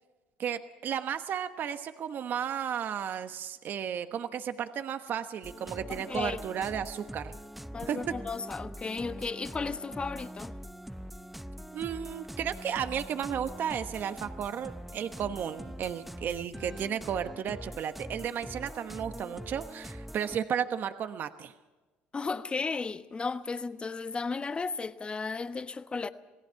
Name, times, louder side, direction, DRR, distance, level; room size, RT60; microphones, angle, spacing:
voice 1, 0.4-7.3 7.9-8.0 11.7-21.5, right 8 dB, 55° right, 1.2 m, -34 dB
sound 1, 5.4-20.4, equal, 5° right, 0.7 m, -43 dB
voice 2, 5.9-6.4 7.7-10.5 22.1-26.1, left 4 dB, 25° left, 1.3 m, -34 dB
27.0 x 18.5 x 5.8 m
supercardioid pair, 90°, 4 cm